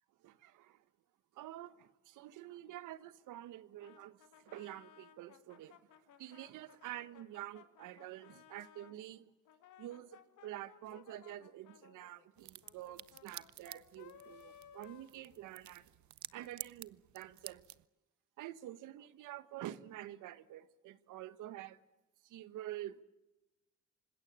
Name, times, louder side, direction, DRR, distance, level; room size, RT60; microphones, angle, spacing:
voice 1, 0.2-0.8 1.3-5.8 6.2-9.3 9.8-15.8 16.3-17.6 18.4-21.8 22.2-23.0, right 13 dB, 90° right, 1.3 m, -48 dB
Brass instrument, 3.8-9.0 9.4-15.8, left 9 dB, 80° left, 2.5 m, -60 dB
sound 1, 12.4-17.9, right 14 dB, 70° right, 0.8 m, -52 dB
26.0 x 20.5 x 8.7 m
cardioid pair, 90°, 30 cm